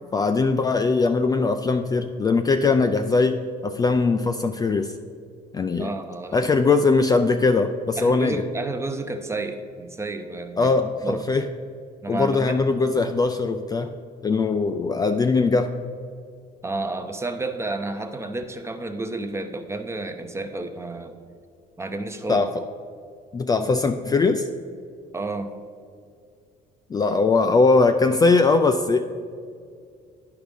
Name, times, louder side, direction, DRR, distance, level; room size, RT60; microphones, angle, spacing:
voice 1, 0.1-4.9 5.5-5.9 6.3-8.4 10.6-11.5 12.1-13.9 14.2-15.7 22.3-22.6 23.3-24.5 26.9-29.0, left 4 dB, 20° left, 7 dB, 0.3 m, -20 dB
voice 2, 5.8-6.4 8.0-11.2 12.0-12.6 16.6-21.2 21.8-22.5 25.1-25.5, right 2 dB, 15° right, 7 dB, 0.7 m, -31 dB
10.0 x 4.8 x 5.2 m, 2.3 s
cardioid pair, 110°, 17 cm